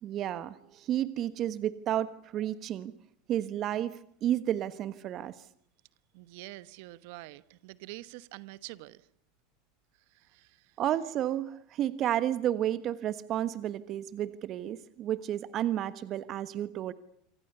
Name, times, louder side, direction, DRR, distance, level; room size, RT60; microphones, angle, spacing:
voice 1, 0.0-2.9 3.3-5.4 10.8-16.9, right 11 dB, 45° right, 1.3 m, -31 dB
voice 2, 6.1-9.1 10.1-10.8, right 19 dB, 65° right, 1.1 m, -46 dB
27.0 x 24.5 x 6.9 m
hypercardioid pair, 90°, 0 cm